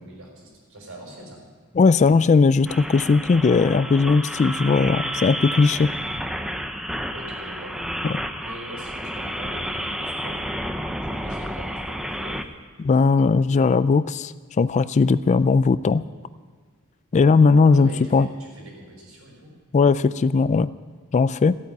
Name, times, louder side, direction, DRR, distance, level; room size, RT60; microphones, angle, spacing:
voice 1, 0.0-1.4 7.1-7.8 8.4-10.4 11.0-12.4 17.7-19.5, right 1 dB, 70° right, -1 dB, 5.5 m, -42 dB
voice 2, 1.8-5.9 8.0-8.2 12.8-16.0 17.1-18.3 19.7-20.7 21.1-21.5, left 4 dB, 35° left, 16 dB, 0.3 m, -18 dB
sound 1, 2.7-12.4, equal, ahead, 0.7 m, -31 dB
15.0 x 8.6 x 9.4 m, 1.5 s
head